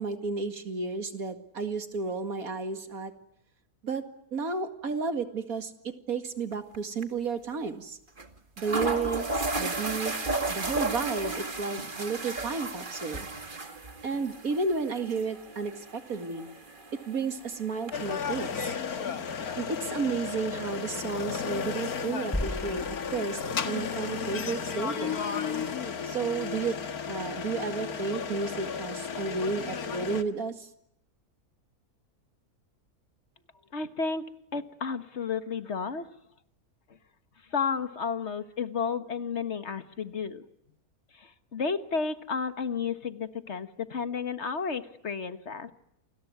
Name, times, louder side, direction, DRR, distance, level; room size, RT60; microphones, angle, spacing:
voice 1, 0.0-3.1 3.8-8.0 8.6-10.1 10.5-13.3 14.0-16.5 17.1-18.7 19.6-25.2 26.0-26.8 27.1-30.7, right 4 dB, 65° right, 8 dB, 2.6 m, -32 dB
sound 1, 6.5-6.8 7.0-7.1 8.2-8.3 8.6-17.9, right 2 dB, 35° right, 2.2 m, -34 dB
sound 2, 17.9-30.2, left 6 dB, 75° left, 2.0 m, -34 dB
sound 3, 22.3-24.1, left 1 dB, 5° left, 1.1 m, -36 dB
voice 2, 33.7-34.2 34.5-36.1 37.5-40.4 41.2-45.7, left 5 dB, 50° left, 11 dB, 1.7 m, -32 dB
29.0 x 21.5 x 9.5 m, 0.77 s
omnidirectional pair, 1.6 m